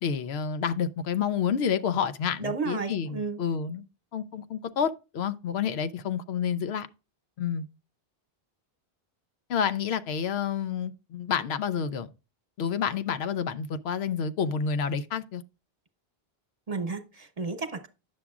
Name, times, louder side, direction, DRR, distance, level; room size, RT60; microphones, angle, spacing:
voice 1, 0.0-3.8 4.1-6.9 7.4-7.6 9.5-12.1 12.6-15.4, left 7 dB, 80° left, 0.9 m, -29 dB
voice 2, 2.4-3.4 16.7-17.9, right 4 dB, 40° right, 1.1 m, -32 dB
9.6 x 7.0 x 2.4 m
omnidirectional pair, 1.0 m